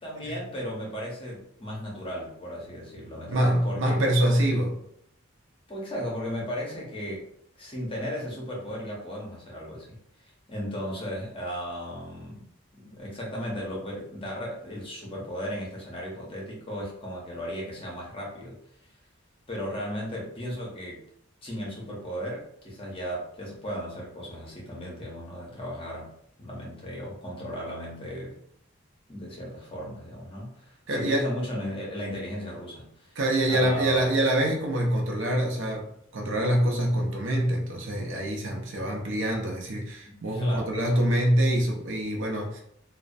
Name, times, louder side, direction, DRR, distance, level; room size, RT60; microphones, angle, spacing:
voice 1, 0.0-4.0 5.7-7.3 7.6-10.0 10.5-12.5 12.7-18.6 19.5-21.0 21.4-26.1 26.4-28.4 29.1-33.2 33.5-34.1 40.1-41.0, equal, 25° left, -3 dB, 0.6 m, -35 dB
voice 2, 3.3-4.8 30.9-31.3 33.2-42.6, right 1 dB, 65° right, 0 dB, 0.6 m, -25 dB
2.4 x 2.1 x 2.5 m, 0.70 s
head